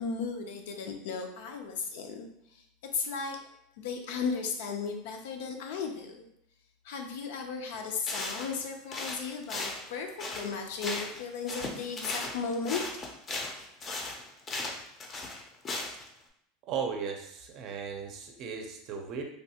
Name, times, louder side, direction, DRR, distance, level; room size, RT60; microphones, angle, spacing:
voice 1, 0.0-2.3 2.9-3.4 3.8-6.2 6.8-10.1 10.3-12.8, left 5 dB, 80° left, 4 dB, 0.5 m, -35 dB
sound 1, 7.7-7.8 8.0-8.6 8.9-11.2 11.5-16.1, left 2 dB, 30° left, 0.5 m, -37 dB
voice 2, 16.7-19.2, right 6 dB, 45° right, 4 dB, 0.5 m, -36 dB
3.2 x 2.3 x 2.8 m, 0.75 s
supercardioid pair, 130°, 0 cm